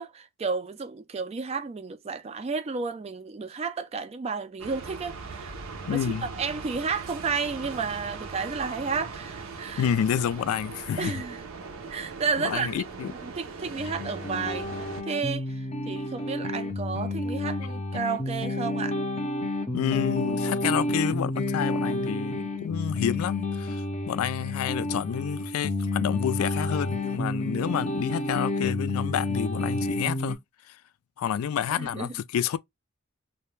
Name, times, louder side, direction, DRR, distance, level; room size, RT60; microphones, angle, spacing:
voice 1, 0.0-5.6 5.9-9.9 11.0-11.4 11.9-12.7 13.0-19.0 31.8-32.2, right 5 dB, 30° right, 0.3 m, -32 dB
sound 1, 4.6-15.0, right 4 dB, 75° right, 0.6 m, -40 dB
voice 2, 5.9-6.3 9.8-11.2 12.4-13.1 19.7-30.4 30.7-30.8 31.2-32.6, left 9 dB, 90° left, 0.3 m, -29 dB
sound 2, 13.8-30.4, left 2 dB, 30° left, 0.5 m, -30 dB
2.3 x 2.1 x 3.0 m
head